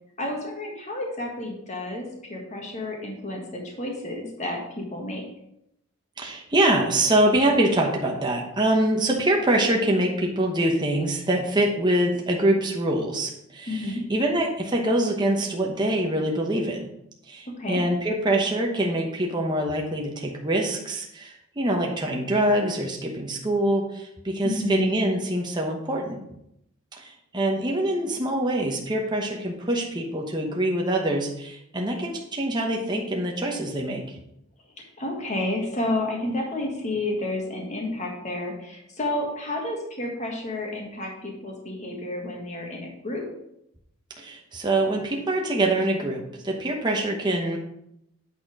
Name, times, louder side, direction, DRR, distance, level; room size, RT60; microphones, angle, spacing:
voice 1, 0.2-5.2 13.7-14.0 17.6-17.8 24.4-24.9 35.0-43.2, left 1 dB, 35° left, 0 dB, 1.5 m, -30 dB
voice 2, 6.2-16.9 17.3-26.2 26.9-34.0 44.2-47.6, right 1 dB, 20° right, 0 dB, 0.9 m, -24 dB
8.6 x 4.3 x 4.9 m, 0.79 s
head